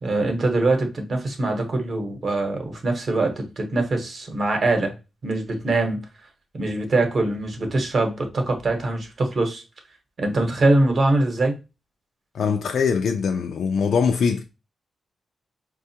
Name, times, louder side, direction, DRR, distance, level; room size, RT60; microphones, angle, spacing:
voice 1, 0.0-4.9 5.2-6.0 6.5-9.6 10.2-11.6, right 2 dB, 45° right, 0.9 m, -23 dB
voice 2, 12.3-14.5, left 6 dB, 70° left, 0.3 m, -22 dB
4.9 x 2.3 x 2.7 m
wide cardioid pair, 155°, 0 cm